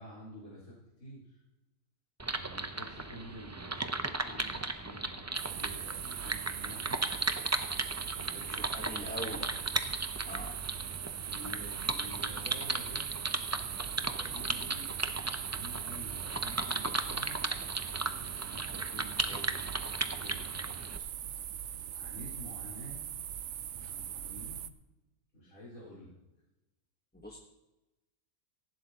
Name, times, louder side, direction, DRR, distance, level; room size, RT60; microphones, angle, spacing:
voice 1, 0.0-1.4 2.3-7.2 8.1-9.5 11.2-13.1 14.0-19.6 19.9-20.5 21.9-23.0 23.7-24.6 25.3-26.1, equal, 80° left, -8 dB, 5.0 m, -49 dB
sound 1, 2.2-21.0, right 2 dB, 25° right, 0.3 m, -36 dB
sound 2, 5.3-24.7, right 10 dB, 65° right, 0.9 m, -40 dB
voice 2, 8.4-9.5 10.2-10.6 27.1-27.4, equal, 10° left, -1 dB, 1.1 m, -43 dB
18.5 x 15.0 x 2.9 m, 1.0 s
omnidirectional pair, 1.5 m